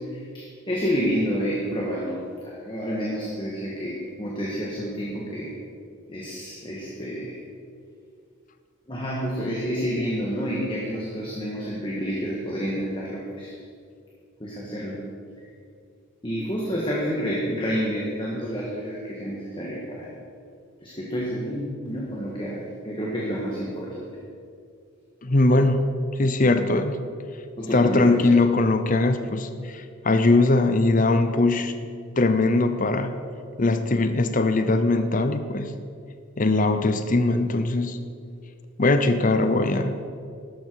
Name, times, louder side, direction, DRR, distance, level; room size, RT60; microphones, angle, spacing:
voice 1, 0.1-5.5 6.1-7.4 8.9-13.5 14.4-15.0 16.2-20.1 20.8-24.1 27.6-28.2, equal, 25° left, -4 dB, 1.7 m, -29 dB
voice 2, 25.2-25.9 26.2-27.0 27.7-31.7 32.2-33.1 33.6-35.8 36.4-38.0 38.8-39.9, left 2 dB, 40° left, 9 dB, 0.7 m, -21 dB
13.0 x 12.0 x 4.7 m, 2.3 s
head